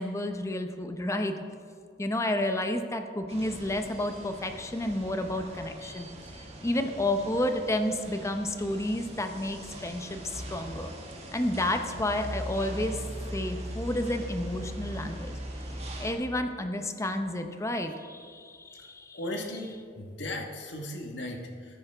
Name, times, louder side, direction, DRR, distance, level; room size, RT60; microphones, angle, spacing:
voice 1, 0.0-1.3 2.0-6.1 6.6-10.9 11.3-13.0 13.3-15.3 16.0-19.2, left 1 dB, 15° left, 7 dB, 0.7 m, -31 dB
sound 1, 3.3-16.1, equal, 35° right, 1.6 m, -40 dB
voice 2, 19.1-21.8, left 1 dB, 70° left, 2 dB, 1.4 m, -37 dB
13.5 x 9.7 x 3.4 m, 2.1 s
head